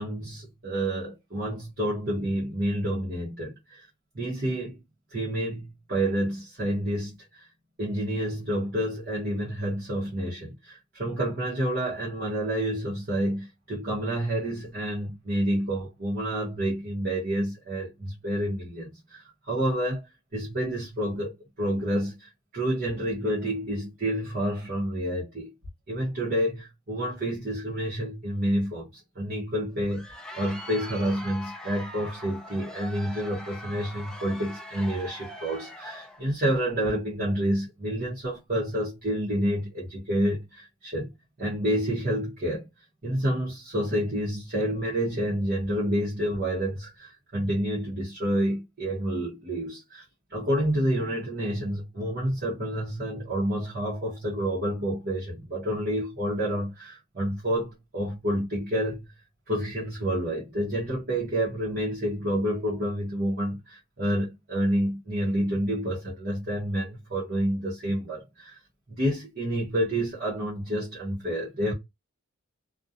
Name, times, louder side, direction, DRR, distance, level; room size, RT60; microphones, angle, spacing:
voice 1, 0.0-3.9 4.1-4.8 5.1-7.5 7.8-20.0 20.3-25.5 25.9-28.9 29.2-41.1 41.4-42.7 43.0-50.0 50.3-59.1 59.5-68.6 68.9-71.7, right 1 dB, 45° right, 0.8 m, -29 dB
Crowd, 29.7-36.3, equal, 5° left, 0.3 m, -42 dB
2.5 x 2.2 x 2.6 m
head